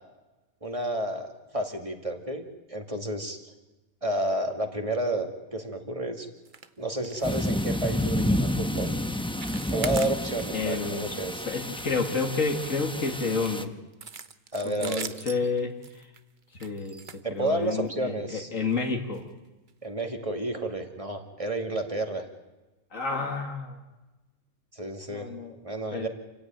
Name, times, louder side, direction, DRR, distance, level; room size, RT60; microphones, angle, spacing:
voice 1, 0.6-3.4 4.0-6.3 6.8-8.9 9.7-11.4 14.5-15.1 17.2-18.5 19.8-22.2 24.7-25.3 25.6-26.1, right 1 dB, 25° right, 4 dB, 2.4 m, -31 dB
sound 1, 6.4-6.7 7.0-7.3 7.6-7.8 8.2-8.4 8.8-9.0 9.3-10.7 11.0-11.2 11.6-12.7 13.3-17.9 18.6-18.8 19.1-19.2 19.7-19.8, right 6 dB, 40° right, 0.9 m, -41 dB
sound 2, 7.2-13.6, left 1 dB, 5° left, 0.8 m, -30 dB
voice 2, 10.5-11.1 11.5-13.7 14.6-16.1 16.6-17.0 17.3-19.3 22.9-23.8 25.1-25.6 25.9-26.1, left 4 dB, 75° left, 2 dB, 2.3 m, -30 dB
28.0 x 15.5 x 9.1 m, 1.1 s
omnidirectional pair, 1.4 m